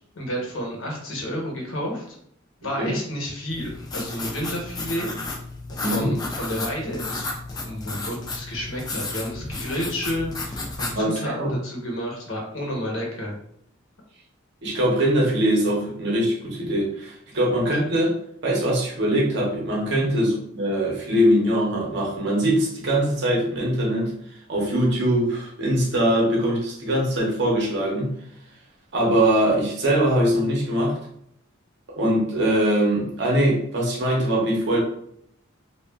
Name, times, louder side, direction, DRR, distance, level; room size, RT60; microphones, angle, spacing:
voice 1, 0.1-2.2 2.6-5.1 5.7-7.3 7.6-13.4 19.9-20.1, equal, 80° left, -1 dB, 1.0 m, -31 dB
sound 1, 3.5-11.0, left 3 dB, 20° left, 0.3 m, -33 dB
voice 2, 5.8-6.1 11.0-11.6 14.6-18.2 18.4-24.1 24.5-28.1 28.9-31.0 31.9-34.8, right 1 dB, 60° right, -3 dB, 0.8 m, -22 dB
3.0 x 2.3 x 2.3 m, 0.70 s
head